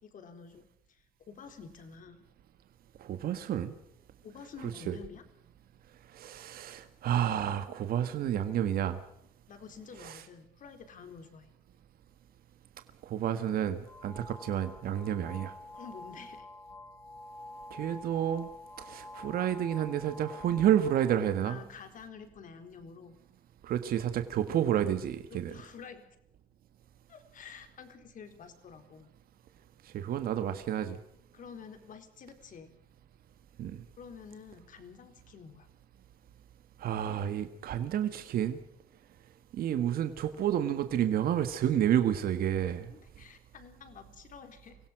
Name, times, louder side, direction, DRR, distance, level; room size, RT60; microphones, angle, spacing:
voice 1, 0.0-2.2 4.2-5.2 9.5-11.5 15.7-16.5 21.4-23.2 25.3-26.0 27.1-29.1 31.3-32.7 34.0-35.7 42.9-44.8, left 6 dB, 50° left, 7 dB, 4.0 m, -49 dB
voice 2, 3.0-3.7 4.9-5.0 6.1-9.0 10.0-10.2 13.0-15.5 17.7-18.5 18.8-21.6 23.6-25.6 29.8-31.0 33.6-33.8 36.8-38.6 39.5-42.9, right 10 dB, 60° right, 9 dB, 1.5 m, -30 dB
sound 1, 13.9-21.4, left 2 dB, 10° left, 1.9 m, -48 dB
24.5 x 17.0 x 6.3 m, 0.75 s
cardioid pair, 110°, 17 cm